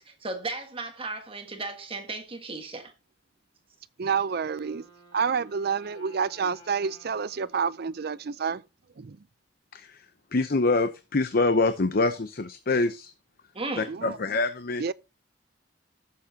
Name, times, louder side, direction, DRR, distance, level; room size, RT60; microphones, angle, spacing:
voice 1, 0.0-2.9 13.5-13.9, right 2 dB, 30° right, 1.5 m, -35 dB
Wind instrument woodwind instrument, 4.0-8.9, left 2 dB, 25° left, 5.8 m, -55 dB
voice 2, 4.0-4.8 5.1-8.6 9.0-9.2 13.9-14.2 14.8-14.9, right 6 dB, 60° right, 0.5 m, -28 dB
voice 3, 9.7-10.1 10.3-13.1 13.8-14.8, left 3 dB, 55° left, 0.7 m, -25 dB
16.5 x 7.1 x 2.8 m
head